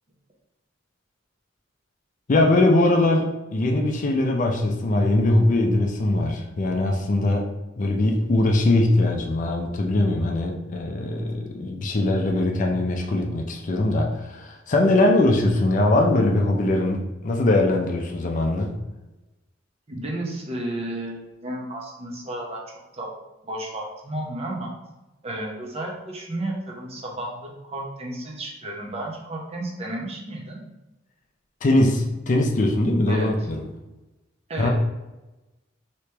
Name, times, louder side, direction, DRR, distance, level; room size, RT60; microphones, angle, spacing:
voice 1, 2.3-7.5 7.8-18.7 31.6-33.7 34.6-34.7, left 2 dB, 40° left, 2 dB, 0.4 m, -21 dB
voice 2, 19.9-23.1 23.4-24.7 25.2-30.6 33.1-33.4 34.5-34.7, right 1 dB, 30° right, -1 dB, 0.7 m, -32 dB
3.1 x 2.9 x 3.3 m, 1.0 s
head